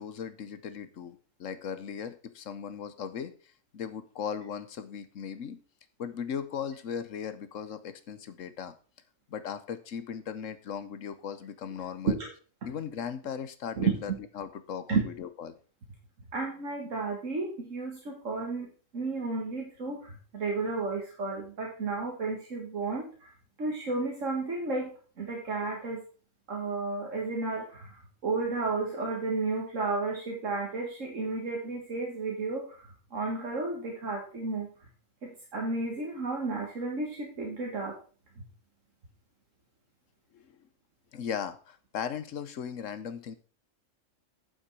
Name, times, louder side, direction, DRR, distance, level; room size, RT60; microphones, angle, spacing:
voice 1, 0.0-5.6 6.0-8.7 9.3-12.2 12.6-15.6 40.3-40.7 41.1-43.3, left 7 dB, 85° left, 12 dB, 1.3 m, -38 dB
voice 2, 16.3-23.3 23.6-26.0 26.5-34.7 35.2-37.9, right 3 dB, 85° right, -1 dB, 2.1 m, -32 dB
8.9 x 7.2 x 4.8 m, 0.40 s
omnidirectional pair, 1.3 m